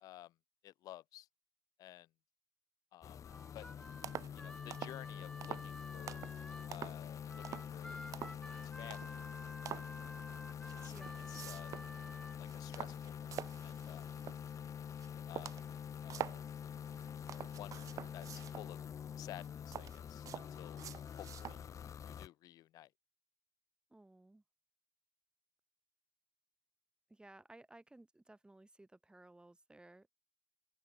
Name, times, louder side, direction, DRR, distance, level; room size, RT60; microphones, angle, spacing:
voice 1, 0.0-0.3 0.6-1.3 1.8-2.1 2.9-3.2 3.5-3.7 4.3-6.2 6.7-8.0 8.6-9.2 10.8-10.9 11.3-11.7 12.4-13.3 13.6-14.1 15.1-15.5 16.0-16.4 17.3-17.8 18.1-18.8 19.2-20.8 21.2-21.8 22.1-22.9, left 14 dB, 85° left, 0.7 m, -53 dB
sound 1, 3.0-22.3, left 8 dB, 60° left, 0.9 m, -46 dB
Harmonica, 3.2-6.7 7.3-12.4, left 1 dB, 10° left, 2.6 m, -52 dB
sound 2, 3.5-3.7 4.0-4.4 4.7-5.0 5.4-5.7 6.1-6.4 6.7-7.1 7.4-7.8 8.1-8.5 8.9-9.2 9.7-9.9 10.6-11.9 12.3-14.5 15.0-15.1 15.4-16.4 16.9-18.7 19.3-21.6 22.1-22.2, right 10 dB, 65° right, 0.3 m, -47 dB
voice 2, 23.9-24.4 27.1-30.1, right 2 dB, 15° right, 2.7 m, -59 dB
open air
cardioid pair, 70°, 6 cm